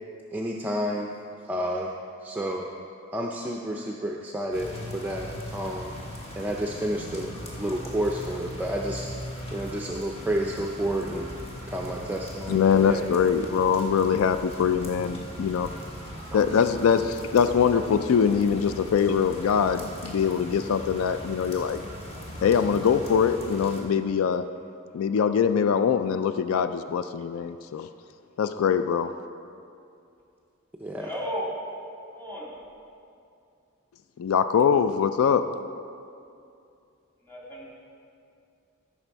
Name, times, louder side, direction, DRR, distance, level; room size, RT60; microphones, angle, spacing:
voice 1, 0.3-1.1 1.4-1.9 2.2-2.7 3.1-5.9 6.4-7.3 7.6-9.1 9.5-11.3 11.7-13.1 16.3-16.4 30.8-31.1, right 1 dB, 10° right, -1 dB, 0.5 m, -30 dB
sound 1, 4.5-23.8, equal, 30° left, 1.5 m, -39 dB
voice 2, 12.5-15.7 16.3-21.8 22.4-24.4 24.9-27.9 28.4-29.1 34.2-35.5, left 7 dB, 80° left, 11 dB, 0.3 m, -23 dB
voice 3, 31.0-31.4 32.1-32.5 37.3-37.7, equal, 10° left, -5 dB, 2.4 m, -34 dB
14.0 x 5.9 x 4.6 m, 2.5 s
head